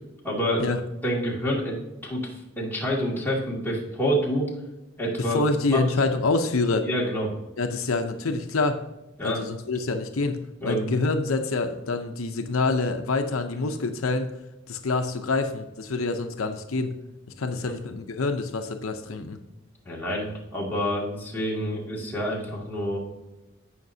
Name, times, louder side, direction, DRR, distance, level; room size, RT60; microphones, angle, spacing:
voice 1, 0.2-0.6 1.0-4.5 5.0-5.4 5.7-5.8 6.8-7.3 9.2-9.4 10.6-10.9 17.5-17.6 19.8-23.0, equal, 10° left, -5 dB, 2.2 m, -28 dB
voice 2, 5.3-6.9 7.6-8.8 9.2-10.4 10.6-14.3 14.7-16.9 17.4-19.4, left 3 dB, 80° left, 6 dB, 0.7 m, -26 dB
17.0 x 5.8 x 2.7 m, 1.0 s
head